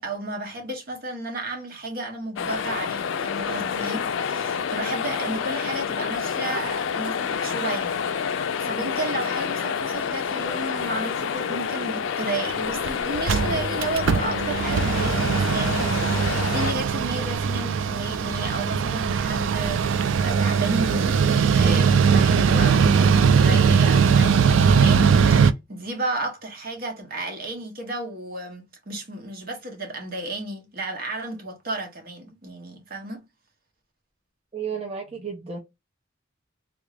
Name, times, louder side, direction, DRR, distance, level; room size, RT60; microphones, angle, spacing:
voice 1, 0.0-33.2, right 2 dB, 50° right, 1.0 m, -33 dB
sound 1, 2.4-16.7, left 7 dB, 75° left, 0.4 m, -28 dB
Mechanical fan, 12.5-12.6 12.9-13.0 13.2-25.5, right 6 dB, 75° right, 0.4 m, -20 dB
voice 2, 34.5-35.6, right 6 dB, 30° right, 0.7 m, -32 dB
3.4 x 2.5 x 3.3 m
head